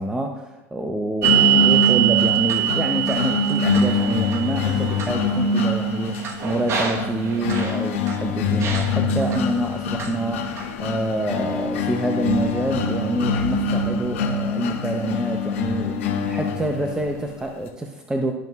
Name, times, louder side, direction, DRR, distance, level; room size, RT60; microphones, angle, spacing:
voice 1, 0.0-18.3, right 2 dB, 10° right, 3 dB, 0.7 m, -27 dB
sound 1, 1.2-17.2, left 3 dB, 80° left, 0.9 m, -24 dB
sound 2, 1.2-8.2 8.6-9.4 10.0-10.7, right 14 dB, 40° right, 1.2 m, -24 dB
12.5 x 5.3 x 2.4 m, 1.0 s
hypercardioid pair, 85°, 7 cm